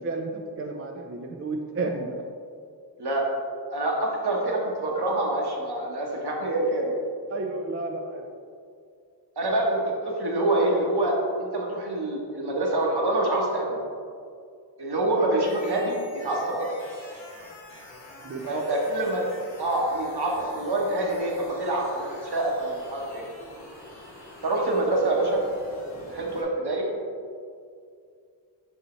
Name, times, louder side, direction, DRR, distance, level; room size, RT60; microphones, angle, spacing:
voice 1, 0.0-2.2 7.3-8.3 18.2-18.7, right 3 dB, 30° right, 2 dB, 0.5 m, -32 dB
voice 2, 3.7-6.9 9.4-13.8 14.8-16.7 18.5-19.2 19.6-23.2 24.4-25.4 26.1-26.9, right 2 dB, 65° right, -2 dB, 1.2 m, -26 dB
sound 1, 15.4-26.4, left 1 dB, 90° left, 1.4 m, -46 dB
5.6 x 5.4 x 3.1 m, 2.3 s
cardioid pair, 50°, 43 cm